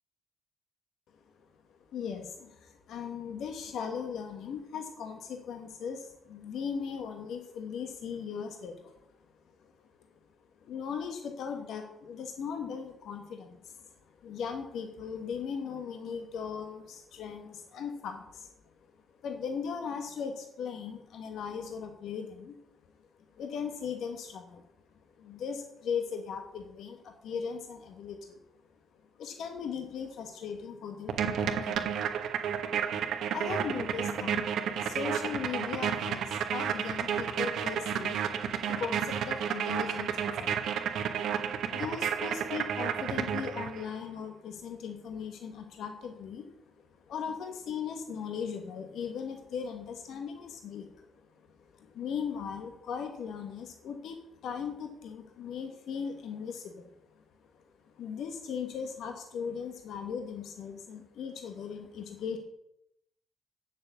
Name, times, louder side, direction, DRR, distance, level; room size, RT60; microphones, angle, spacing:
voice 1, 1.7-9.0 9.6-9.7 10.6-18.5 19.2-22.6 23.4-24.6 25.2-28.4 28.9-31.9 33.3-34.4 34.7-38.2 38.6-40.6 41.1-46.6 47.1-51.3 51.6-56.9 57.5-62.4, left 6 dB, 75° left, 5 dB, 1.2 m, -38 dB
sound 1, 31.1-43.9, right 8 dB, 75° right, 1.1 m, -31 dB
7.5 x 7.0 x 8.3 m, 0.82 s
cardioid pair, 90°, 0 cm